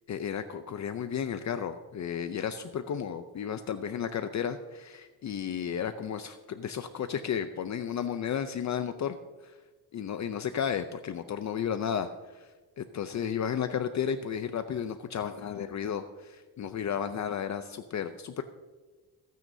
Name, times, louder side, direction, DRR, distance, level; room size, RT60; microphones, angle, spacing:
voice 1, 0.1-9.2 9.4-9.5 9.9-12.5 12.8-18.4, left 8 dB, 50° left, 9 dB, 0.6 m, -33 dB
25.5 x 9.3 x 2.7 m, 1.3 s
wide cardioid pair, 140°, 37 cm